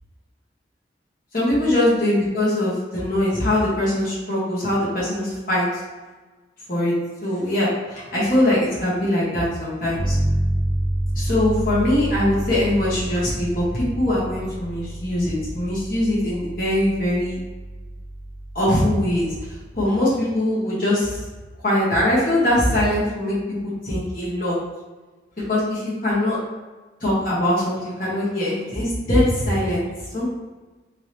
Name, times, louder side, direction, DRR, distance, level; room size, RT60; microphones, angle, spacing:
voice 1, 1.3-5.6 6.7-6.9 7.2-10.2 11.1-17.4 18.5-19.3 19.7-21.2 21.6-23.3 23.8-24.6 25.5-26.4 27.0-29.9 30.1-30.3, left 1 dB, 50° left, -8 dB, 1.4 m, -22 dB
Bass guitar, 10.0-19.7, right 1 dB, 20° right, 0.3 m, -28 dB
3.7 x 3.0 x 3.2 m, 1.3 s
head